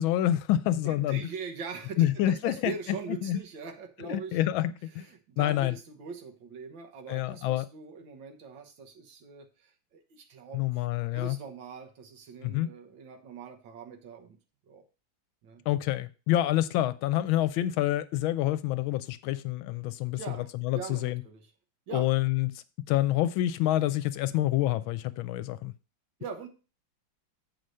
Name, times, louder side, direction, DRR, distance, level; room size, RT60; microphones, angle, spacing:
voice 1, 0.0-1.2 2.0-2.7 3.1-3.4 4.0-5.0 5.4-5.8 7.1-7.7 10.5-11.4 12.4-12.7 15.7-21.2 21.9-22.5 22.9-25.7, left 14 dB, 80° left, 15 dB, 1.4 m, -27 dB
voice 2, 0.9-4.4 4.9-10.6 11.1-14.4 14.7-14.8 15.4-15.6 20.1-20.5 20.7-21.4 21.9-22.1 26.2-26.5, right 5 dB, 70° right, 3 dB, 1.9 m, -42 dB
7.7 x 5.0 x 5.4 m, 0.32 s
omnidirectional pair, 2.2 m